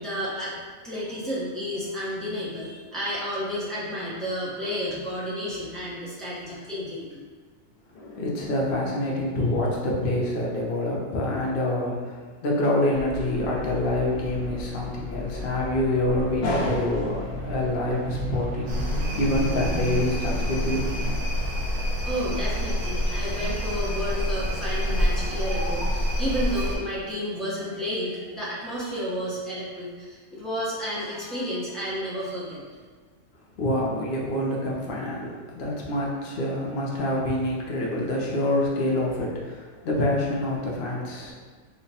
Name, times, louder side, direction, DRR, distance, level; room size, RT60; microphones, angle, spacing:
voice 1, 0.0-7.2 22.0-32.6, equal, ahead, -10 dB, 0.5 m, -31 dB
voice 2, 7.9-20.8 33.6-41.3, left 1 dB, 50° left, -3 dB, 0.6 m, -26 dB
sound 1, 12.9-21.1, equal, 65° right, 1.1 m, -35 dB
sound 2, 18.7-26.8, equal, 85° right, 1.4 m, -27 dB
3.1 x 2.1 x 4.0 m, 1.5 s
omnidirectional pair, 1.5 m